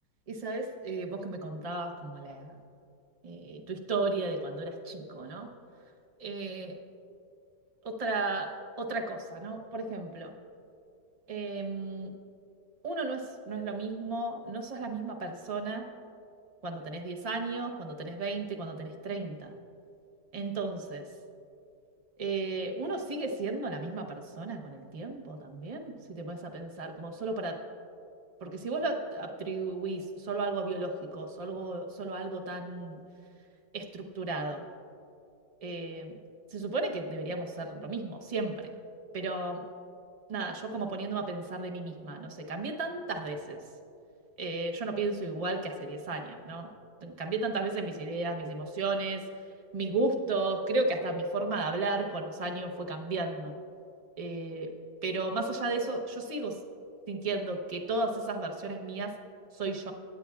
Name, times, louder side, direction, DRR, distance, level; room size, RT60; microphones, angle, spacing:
voice 1, 0.3-2.5 3.2-5.5 6.2-6.7 7.8-8.5 8.8-10.3 11.3-12.1 12.8-15.8 16.6-19.5 20.3-21.0 22.2-24.1 24.4-27.5 28.4-33.0 33.7-34.6 35.6-36.1 36.5-38.6 39.1-39.6 40.3-43.6 44.4-46.7 47.0-49.2 49.7-53.5 54.2-54.7 55.0-56.5 57.1-59.1 59.6-59.9, right 3 dB, 55° right, 2 dB, 0.4 m, -34 dB
24.0 x 8.3 x 2.3 m, 2.6 s
omnidirectional pair, 1.9 m